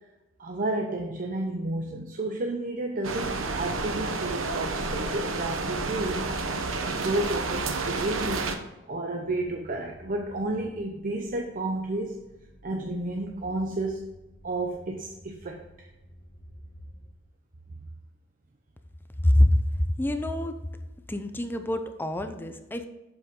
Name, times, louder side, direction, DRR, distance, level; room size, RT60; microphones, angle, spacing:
voice 1, 0.4-8.5 8.9-12.2 12.6-14.1 14.4-15.9, right 2 dB, 40° right, 2 dB, 0.7 m, -32 dB
sound 1, 3.0-8.6, right 3 dB, 80° right, 0.9 m, -30 dB
sound 2, 9.2-17.1, equal, 50° left, 1.9 m, -52 dB
voice 2, 19.2-20.6 21.1-22.9, left 1 dB, 10° left, 8 dB, 0.5 m, -25 dB
7.7 x 7.2 x 3.7 m, 1.0 s
head